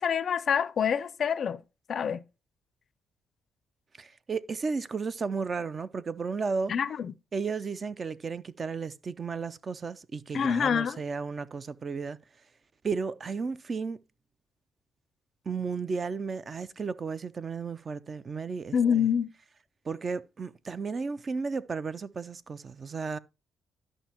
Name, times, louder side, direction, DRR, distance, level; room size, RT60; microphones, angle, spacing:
voice 1, 0.0-1.6 1.9-2.2 6.7-7.1 10.3-11.0 18.7-19.3, left 7 dB, 55° left, 0.4 m, -26 dB
voice 2, 4.0-6.7 7.3-12.2 12.8-14.0 15.5-19.1 19.9-23.2, right 5 dB, 40° right, 0.4 m, -34 dB
12.5 x 5.3 x 2.9 m
cardioid pair, 90°, 0 cm